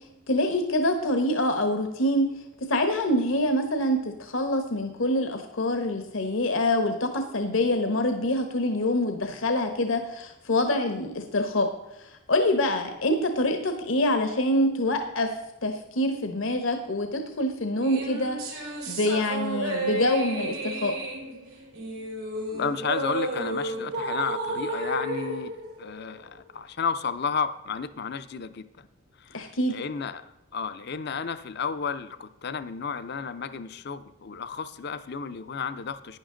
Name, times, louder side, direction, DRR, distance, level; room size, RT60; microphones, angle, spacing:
voice 1, 0.3-2.3 2.7-11.7 12.3-15.3 15.6-20.9 29.3-29.8, left 1 dB, 75° left, 6 dB, 1.1 m, -25 dB
sound 1, 17.8-26.4, right 2 dB, 90° right, 4.6 m, -32 dB
voice 2, 22.5-25.5 25.8-28.9 29.2-36.2, left 6 dB, 55° left, 12 dB, 0.5 m, -32 dB
11.0 x 9.8 x 3.8 m, 0.93 s
head